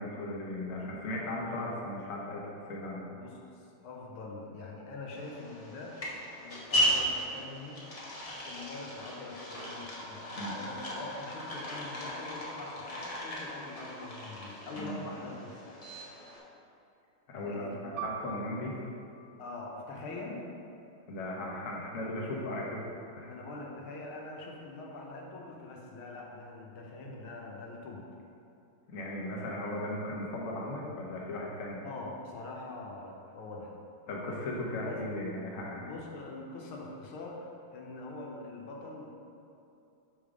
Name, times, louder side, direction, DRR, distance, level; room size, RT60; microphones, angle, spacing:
voice 1, 0.0-3.1 10.3-10.5 14.8-15.0 17.3-18.8 21.1-22.9 23.1-23.4 28.9-31.8 34.1-35.8, left 1 dB, 50° left, -3 dB, 1.0 m, -37 dB
voice 2, 3.8-6.0 6.4-7.9 8.4-15.6 17.3-17.8 19.4-20.5 23.2-28.1 31.8-33.7 34.8-35.0 35.8-39.1, left 2 dB, 85° left, -1 dB, 1.6 m, -43 dB
sound 1, 5.1-16.4, equal, 70° left, 0.3 m, -36 dB
Piano, 18.0-23.0 23.3-23.5 24.3-24.6, right 6 dB, 75° right, 1.0 m, -46 dB
6.1 x 3.5 x 4.9 m, 2.7 s
omnidirectional pair, 2.3 m